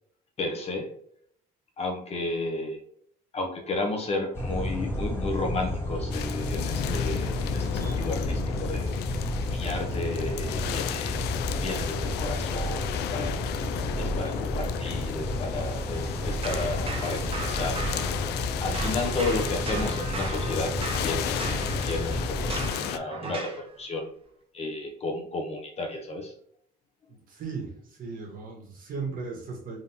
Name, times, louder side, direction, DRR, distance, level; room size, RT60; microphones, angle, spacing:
voice 1, 0.4-0.9 1.8-2.8 3.3-8.9 9.5-11.2 11.6-13.4 14.0-17.8 18.6-24.1 24.5-26.3, left 2 dB, 40° left, 2 dB, 1.0 m, -33 dB
sound 1, 4.3-22.7, left 1 dB, 15° left, 1.4 m, -31 dB
sound 2, 6.1-23.0, left 10 dB, 75° left, 0.4 m, -34 dB
sound 3, 16.4-18.5 18.7-23.7, right 3 dB, 35° right, 0.8 m, -37 dB
voice 2, 27.1-29.8, right 4 dB, 55° right, 0 dB, 1.6 m, -37 dB
3.8 x 3.5 x 2.9 m, 0.66 s
cardioid pair, 110°, 17 cm